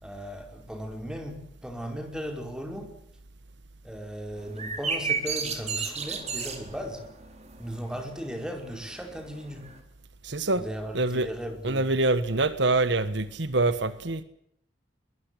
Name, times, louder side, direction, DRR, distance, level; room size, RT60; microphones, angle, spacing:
voice 1, 0.0-3.0 3.8-7.1 7.6-9.7 10.6-11.9, equal, 5° right, 4 dB, 5.0 m, -37 dB
sound 1, 4.4-9.8, right 5 dB, 35° right, 4.4 m, -34 dB
voice 2, 10.2-10.7 10.9-11.3 11.6-14.2, right 2 dB, 65° right, 13 dB, 1.5 m, -25 dB
22.5 x 21.0 x 8.3 m, 0.74 s
head